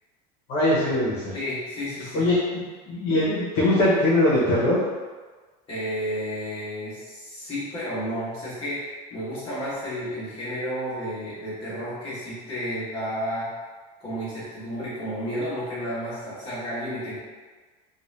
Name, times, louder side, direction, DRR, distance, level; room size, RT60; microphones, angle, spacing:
voice 1, 0.5-1.3 2.1-4.8, left 1 dB, 55° left, -9 dB, 1.1 m, -22 dB
voice 2, 1.3-2.2 5.7-13.5 14.0-17.2, equal, 25° left, -11 dB, 1.2 m, -32 dB
3.7 x 2.5 x 3.2 m, 1.4 s
cardioid pair, 175°, 20 cm